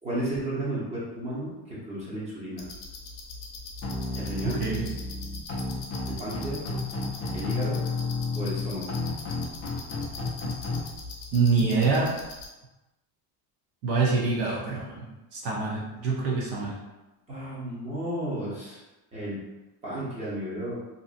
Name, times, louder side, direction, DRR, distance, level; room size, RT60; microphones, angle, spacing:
voice 1, 0.0-2.7 4.1-4.6 6.1-6.7 7.3-7.8 8.3-8.9 17.3-18.8 19.1-19.4 19.8-20.8, right 1 dB, 15° right, -8 dB, 0.8 m, -33 dB
sound 1, 2.6-12.5, left 3 dB, 50° left, 0.7 m, -42 dB
sound 2, 3.8-10.8, left 3 dB, 30° left, 0.3 m, -32 dB
voice 2, 4.4-4.9 11.3-12.1 13.8-16.8, right 4 dB, 60° right, -5 dB, 0.7 m, -26 dB
2.6 x 2.6 x 2.5 m, 1.0 s
cardioid pair, 160°, 46 cm